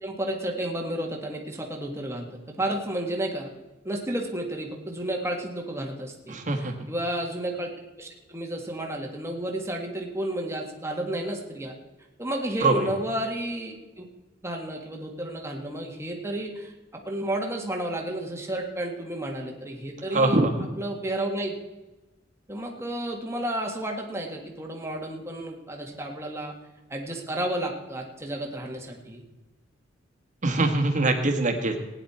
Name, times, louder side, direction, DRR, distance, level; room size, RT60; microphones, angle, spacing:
voice 1, 0.0-3.5 3.8-7.7 8.0-11.7 12.2-14.1 14.4-16.7 17.1-20.4 20.8-21.5 22.5-26.5 26.9-29.2, right 1 dB, 15° right, 1 dB, 1.8 m, -32 dB
voice 2, 6.3-6.7 12.6-12.9 20.1-20.5 30.4-31.7, right 2 dB, 40° right, 3 dB, 1.8 m, -23 dB
16.5 x 10.0 x 4.4 m, 1.1 s
head